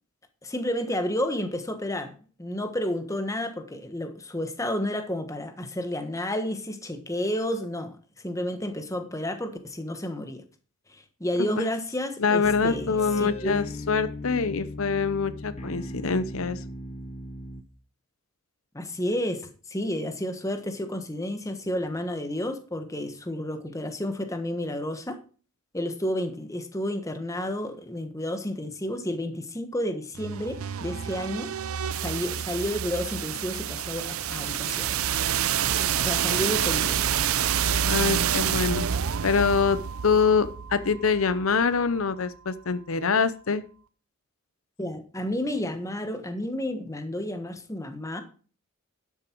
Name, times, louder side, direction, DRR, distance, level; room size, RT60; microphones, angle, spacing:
voice 1, 0.4-2.1 2.4-10.4 10.9-13.6 18.7-25.2 25.7-31.5 32.0-34.9 35.8-37.4 44.8-48.2, left 1 dB, 15° left, 1.4 m, -31 dB
voice 2, 12.2-16.6 37.9-38.8 39.2-39.8 40.0-43.6, left 5 dB, 80° left, 0.7 m, -24 dB
sound 1, 12.4-17.6, equal, 30° left, 0.9 m, -38 dB
sound 2, 30.1-42.0, right 9 dB, 90° right, 0.6 m, -28 dB
12.0 x 7.4 x 4.6 m
head